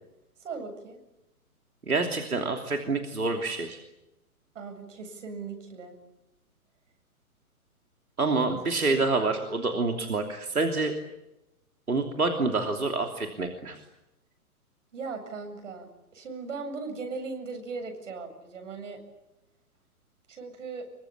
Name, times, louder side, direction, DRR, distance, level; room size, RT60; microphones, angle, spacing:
voice 1, 0.4-1.0 4.5-6.0 14.9-15.9 16.1-19.0 20.3-20.9, right 4 dB, 55° right, 5 dB, 8.0 m, -38 dB
voice 2, 1.9-3.8 8.2-10.9 11.9-13.8, right 3 dB, 80° right, 3 dB, 3.2 m, -27 dB
26.0 x 24.0 x 8.7 m, 0.93 s
figure-of-eight pair, 120°, 43 cm